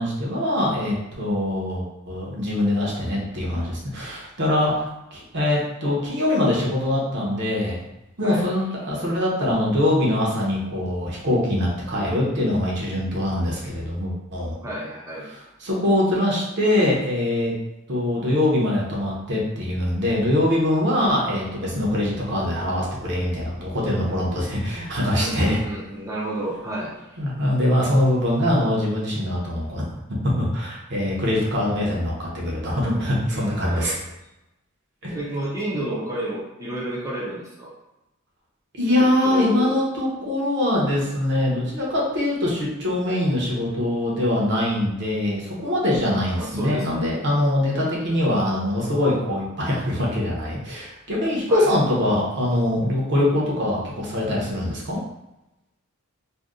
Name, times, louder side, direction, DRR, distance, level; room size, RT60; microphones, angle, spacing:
voice 1, 0.0-7.8 8.2-14.5 15.6-17.5 17.9-25.6 27.2-29.9 30.4-34.0 35.0-35.1 38.7-55.0, left 1 dB, 55° right, -4 dB, 0.9 m, -23 dB
voice 2, 14.6-15.3 25.1-27.2 33.3-34.0 35.1-37.7 38.9-39.7 46.4-47.0 51.5-51.7, right 1 dB, 15° right, -7 dB, 0.6 m, -31 dB
2.6 x 2.2 x 3.6 m, 0.93 s
head